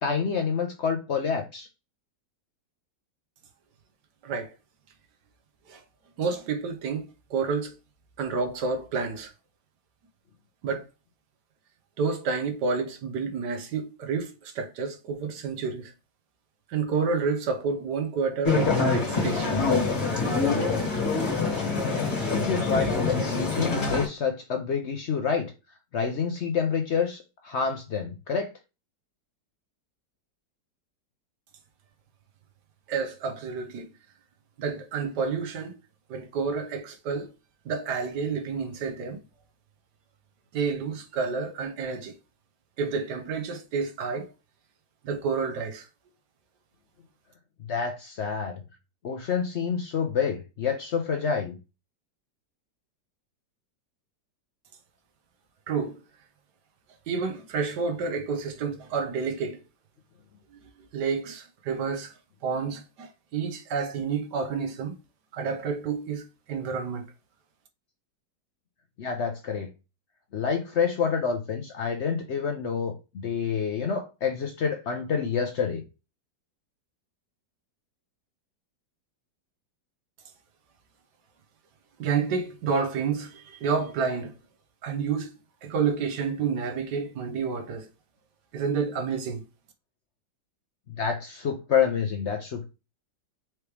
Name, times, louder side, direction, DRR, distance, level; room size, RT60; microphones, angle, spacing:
voice 1, 0.0-1.7 22.3-25.5 25.9-28.5 47.7-48.5 49.0-51.5 69.0-69.7 70.3-72.9 73.2-75.8 91.0-92.6, left 6 dB, 70° left, 0.6 m, -28 dB
voice 2, 6.2-7.7 8.2-9.3 10.6-10.8 12.0-15.9 16.7-19.7 32.9-33.9 34.6-35.7 36.1-37.3 37.6-39.2 40.5-42.1 42.8-44.3 45.0-45.9 55.7-55.9 57.1-59.6 60.9-62.1 62.4-65.0 65.3-67.1 82.0-84.3 84.8-85.3 85.6-87.9 88.5-89.4, right 5 dB, 70° right, 1.3 m, -29 dB
sound 1, 18.4-24.1, left 4 dB, 35° left, 2.0 m, -25 dB
4.7 x 3.0 x 3.3 m
omnidirectional pair, 2.0 m